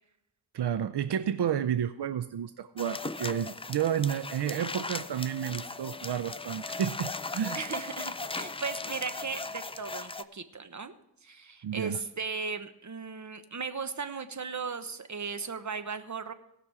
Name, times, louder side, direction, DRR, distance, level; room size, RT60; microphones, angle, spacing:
voice 1, 0.5-7.6 11.6-12.0, right 9 dB, 80° right, 11 dB, 0.5 m, -31 dB
sound 1, 2.8-10.2, left 3 dB, 15° left, 0.4 m, -38 dB
voice 2, 7.5-10.9 11.2-16.3, right 5 dB, 45° right, 9 dB, 1.1 m, -37 dB
18.0 x 6.1 x 4.8 m, 0.85 s
wide cardioid pair, 60°, 39 cm